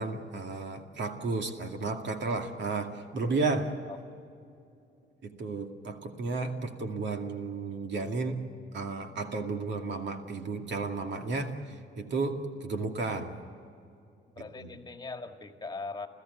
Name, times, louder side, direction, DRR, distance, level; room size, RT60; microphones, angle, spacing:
voice 1, 0.0-3.7 5.2-8.4 8.7-13.3 14.4-14.7, right 3 dB, 65° right, 4 dB, 2.3 m, -33 dB
voice 2, 14.4-16.1, left 3 dB, 20° left, 5 dB, 1.9 m, -40 dB
29.0 x 15.0 x 8.1 m, 2.5 s
cardioid pair, 90°, 20 cm